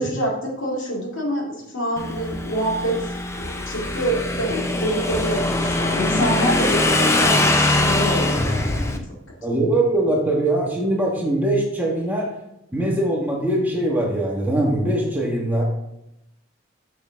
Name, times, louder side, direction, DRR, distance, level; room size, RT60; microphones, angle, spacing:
voice 1, 0.0-3.1 3.4-9.0, right 1 dB, 85° left, -2 dB, 2.2 m, -26 dB
Motorcycle / Engine, 2.0-9.0, left 2 dB, 15° left, 0.4 m, -22 dB
voice 2, 9.4-12.3 12.7-15.6, right 1 dB, 10° right, -3 dB, 1.2 m, -22 dB
6.4 x 6.3 x 3.4 m, 0.85 s
head